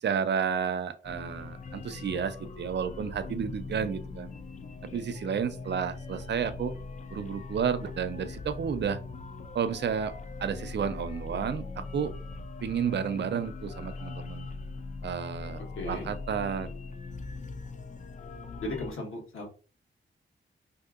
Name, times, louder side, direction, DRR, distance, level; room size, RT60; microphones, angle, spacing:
voice 1, 0.0-4.3 4.9-6.7 7.1-9.0 9.5-10.1 10.4-12.1 12.6-14.5 15.0-15.6 15.9-16.7, right 7 dB, 60° right, 11 dB, 0.4 m, -31 dB
sound 1, 1.0-18.9, left 3 dB, 35° left, 0.4 m, -41 dB
voice 2, 15.8-16.1 18.6-19.4, left 2 dB, 80° left, -1 dB, 1.2 m, -36 dB
3.4 x 2.7 x 2.3 m, 0.35 s
wide cardioid pair, 125°, 21 cm